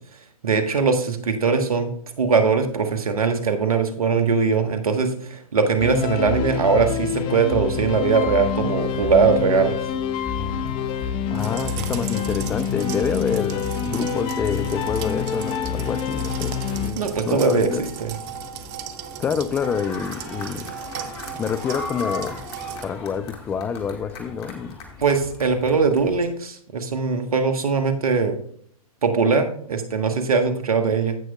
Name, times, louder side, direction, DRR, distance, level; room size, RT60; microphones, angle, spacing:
voice 1, 0.4-1.9 2.2-9.8 16.9-18.1 25.0-28.4 29.0-31.2, right 5 dB, 70° right, 7 dB, 1.3 m, -21 dB
sound 1, 5.8-16.9, left 7 dB, 25° left, 0.7 m, -27 dB
sound 2, 8.8-26.3, left 3 dB, 40° left, 1.9 m, -41 dB
voice 2, 11.3-16.5 16.8-17.8 19.2-20.7 21.4-22.5 22.8-24.8, left 6 dB, 10° left, 13 dB, 0.3 m, -27 dB
sound 3, 11.3-22.8, right 9 dB, 35° right, 0.8 m, -36 dB
15.5 x 6.3 x 2.3 m, 0.62 s
figure-of-eight pair, 120°, 19 cm